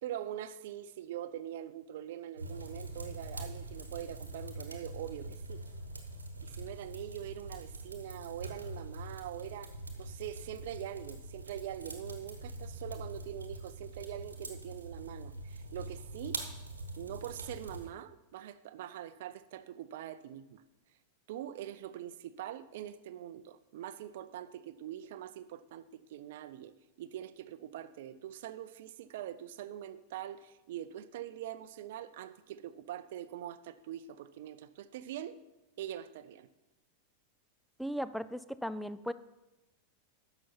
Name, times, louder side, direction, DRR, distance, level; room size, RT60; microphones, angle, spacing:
voice 1, 0.0-5.6 6.4-9.7 10.0-16.4 17.0-20.6 21.3-35.4 35.8-36.5, right 11 dB, 55° right, 14 dB, 0.5 m, -43 dB
sound 1, 2.4-17.9, right 2 dB, 80° right, 1.1 m, -44 dB
voice 2, 37.8-39.1, equal, ahead, 13 dB, 0.4 m, -37 dB
10.5 x 6.9 x 4.5 m, 1.0 s
figure-of-eight pair, 90°, 0 cm